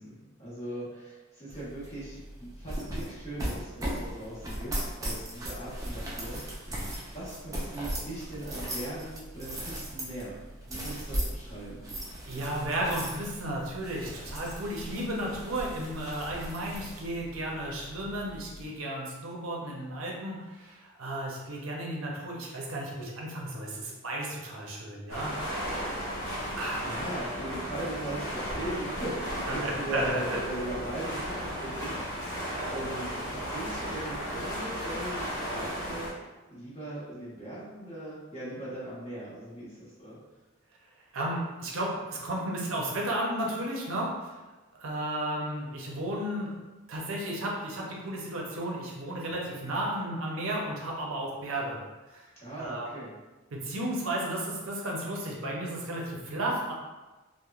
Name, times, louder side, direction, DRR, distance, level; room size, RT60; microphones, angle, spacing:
voice 1, 0.0-6.4 7.1-10.4 10.6-11.8 26.8-32.0 32.7-36.1 36.5-40.2 52.4-53.1, right 1 dB, 30° left, -10 dB, 0.9 m, -39 dB
sound 1, 1.5-18.7, equal, 15° right, 0.3 m, -38 dB
voice 2, 12.3-25.3 26.5-26.8 29.5-30.2 41.1-44.1 44.8-46.5 46.9-51.8 52.1-52.2 52.6-52.9 53.5-56.7, right 1 dB, 75° right, -2 dB, 0.5 m, -33 dB
sound 2, 25.1-36.1, equal, 60° left, 0.6 m, -35 dB
3.0 x 2.1 x 2.3 m, 1.2 s
head